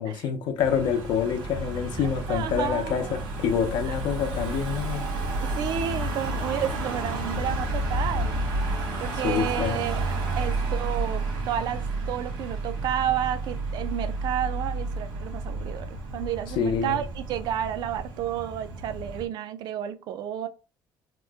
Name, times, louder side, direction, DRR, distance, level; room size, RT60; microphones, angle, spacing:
voice 1, 0.0-5.1 9.2-9.8 16.6-17.0, left 7 dB, 80° left, 0.6 m, -27 dB
Car passing by / Engine, 0.6-19.3, right 2 dB, 90° right, 1.2 m, -31 dB
voice 2, 2.0-3.2 3.9-4.0 5.4-20.5, right 10 dB, 65° right, 0.4 m, -31 dB
2.9 x 2.1 x 3.4 m
cardioid pair, 155°, 8 cm